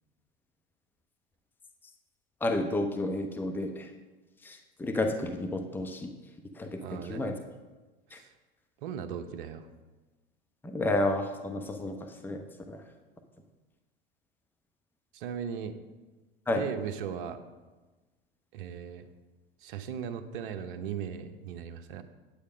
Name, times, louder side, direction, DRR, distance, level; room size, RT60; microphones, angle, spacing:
voice 1, 2.4-3.9 4.4-6.1 6.6-7.3 8.1-8.2 10.6-12.8 16.5-16.6, left 2 dB, 5° left, 5 dB, 0.9 m, -31 dB
voice 2, 6.8-7.3 8.1-8.3 8.8-9.7 15.1-15.8 16.6-17.4 18.5-19.1 19.6-22.0, right 8 dB, 60° right, 8 dB, 1.0 m, -37 dB
8.6 x 8.6 x 5.0 m, 1.2 s
figure-of-eight pair, 85°, 30 cm